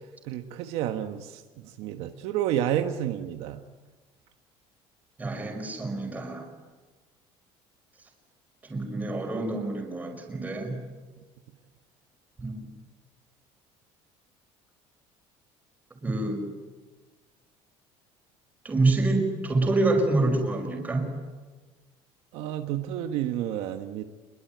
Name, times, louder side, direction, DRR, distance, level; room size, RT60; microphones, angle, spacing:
voice 1, 0.2-3.6 22.3-24.0, right 11 dB, 65° right, 6 dB, 1.4 m, -30 dB
voice 2, 5.2-6.5 8.6-10.8 12.4-12.7 16.0-16.4 18.6-21.1, right 2 dB, 15° right, 3 dB, 5.5 m, -27 dB
28.0 x 22.0 x 9.4 m, 1.3 s
cardioid pair, 180°, 11 cm